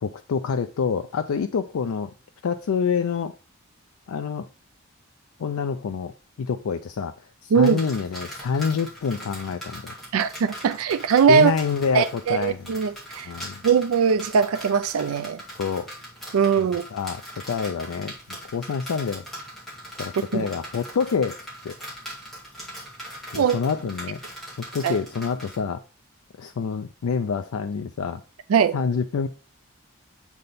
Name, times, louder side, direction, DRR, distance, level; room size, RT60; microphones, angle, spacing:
voice 1, 0.0-2.1 2.4-3.3 4.1-4.5 5.4-6.1 6.4-9.9 11.3-12.7 13.2-13.6 15.6-15.9 16.6-17.2 17.5-19.2 20.0-21.4 21.6-21.8 23.3-24.2 24.7-25.8 26.4-28.2 28.7-29.3, left 6 dB, 90° left, 0.4 m, -27 dB
sound 1, 7.6-25.6, equal, ahead, 2.2 m, -40 dB
voice 2, 10.1-11.5 11.9-13.3 13.6-15.4 16.3-16.8 20.3-20.5 23.4-23.6 24.8-25.0 28.5-28.8, right 6 dB, 85° right, 0.4 m, -20 dB
7.7 x 3.5 x 4.0 m
head